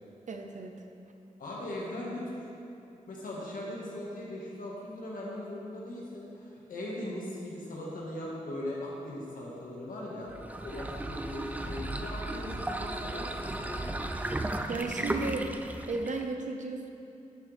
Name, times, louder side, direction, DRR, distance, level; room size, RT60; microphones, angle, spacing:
voice 1, 0.3-0.7 14.7-15.5 15.9-16.9, right 3 dB, 65° right, 4 dB, 0.8 m, -34 dB
voice 2, 1.4-2.5 3.1-10.3 10.6-12.5 12.8-13.9, left 1 dB, 80° left, -5 dB, 1.8 m, -39 dB
sound 1, 10.3-16.3, right 1 dB, 10° right, 0.4 m, -35 dB
11.0 x 6.3 x 3.5 m, 2.8 s
wide cardioid pair, 110°, 14 cm